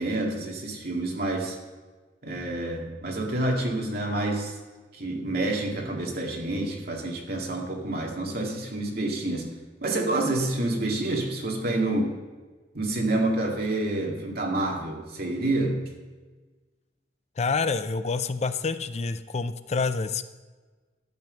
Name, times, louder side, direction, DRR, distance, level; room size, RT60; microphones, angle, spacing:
voice 1, 0.0-1.6 2.2-4.6 4.9-9.5 9.8-12.2 12.7-15.8, right 2 dB, 55° right, -1 dB, 2.2 m, -28 dB
voice 2, 17.4-20.2, left 4 dB, 35° left, 11 dB, 0.4 m, -27 dB
12.0 x 7.6 x 6.4 m, 1.3 s
head